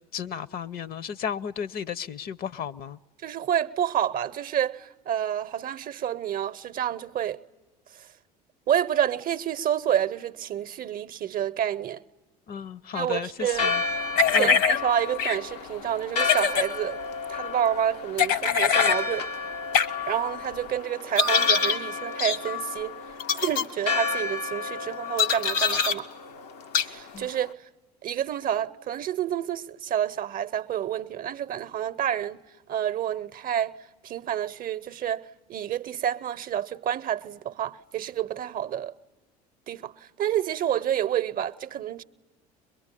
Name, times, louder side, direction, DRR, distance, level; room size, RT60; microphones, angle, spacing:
voice 1, 0.1-3.0 12.5-13.8 14.3-14.6 27.1-27.3, left 7 dB, 50° left, 0.8 m, -34 dB
voice 2, 3.2-7.4 7.9-8.1 8.7-12.0 12.9-13.8 14.3-17.0 17.3-19.3 20.1-23.0 23.3-26.1 26.8-27.6 28.0-33.8 34.0-38.9 39.7-42.0, right 10 dB, 45° right, 0.7 m, -29 dB
Church bell, 13.4-27.5, left 5 dB, 85° left, 0.9 m, -32 dB
sound 1, 14.2-14.8 15.2-15.4 16.2-16.7 18.2-19.0 19.7-19.9 21.2-21.8 22.2-22.4 23.2-23.6 25.2-26.0 26.7-26.9, left 6 dB, 65° left, 1.2 m, -23 dB
23.0 x 22.5 x 9.9 m
hypercardioid pair, 70°, 20 cm